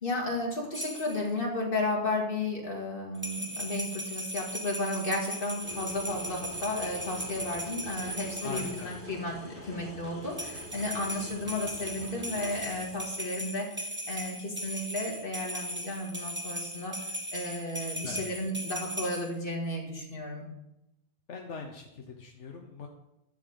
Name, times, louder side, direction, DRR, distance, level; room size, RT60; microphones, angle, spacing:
voice 1, 0.0-17.0 17.3-20.5, left 2 dB, 50° left, -1 dB, 2.5 m, -33 dB
sound 1, 0.7-1.3 3.1-9.0 10.3-19.3, equal, 10° right, 1.2 m, -38 dB
sound 2, 5.6-13.2, equal, 50° right, 4.1 m, -46 dB
voice 2, 8.4-8.9 18.0-18.2 21.3-22.9, left 5 dB, 80° left, 2 dB, 1.3 m, -41 dB
11.0 x 6.8 x 5.3 m, 0.90 s
omnidirectional pair, 1.2 m